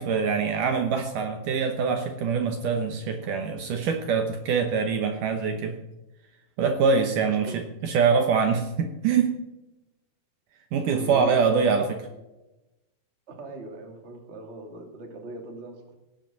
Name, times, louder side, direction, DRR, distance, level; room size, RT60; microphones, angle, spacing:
voice 1, 0.0-5.8 6.6-9.4 10.7-12.0, right 5 dB, 70° right, 5 dB, 2.3 m, -24 dB
voice 2, 7.2-7.6 10.8-11.9 13.3-15.9, right 3 dB, 25° right, 2 dB, 1.9 m, -40 dB
18.0 x 7.6 x 7.5 m, 1.0 s
omnidirectional pair, 4.3 m